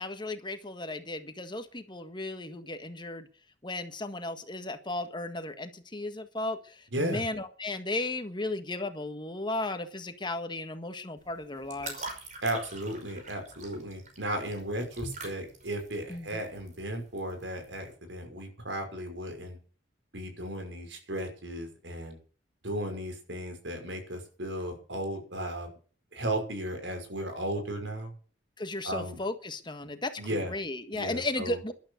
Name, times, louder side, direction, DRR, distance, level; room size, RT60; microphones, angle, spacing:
voice 1, 0.0-3.3 3.6-12.1 16.1-16.4 28.6-31.7, left 2 dB, 25° left, 8 dB, 1.6 m, -35 dB
voice 2, 6.9-7.2 12.4-19.6 20.1-22.2 22.6-25.7 26.1-28.1 28.8-29.2 30.2-30.5 30.9-31.6, right 1 dB, 85° right, 5 dB, 5.8 m, -35 dB
sound 1, 11.2-17.9, right 2 dB, 40° right, 5.4 m, -44 dB
13.5 x 12.0 x 6.5 m, 0.40 s
head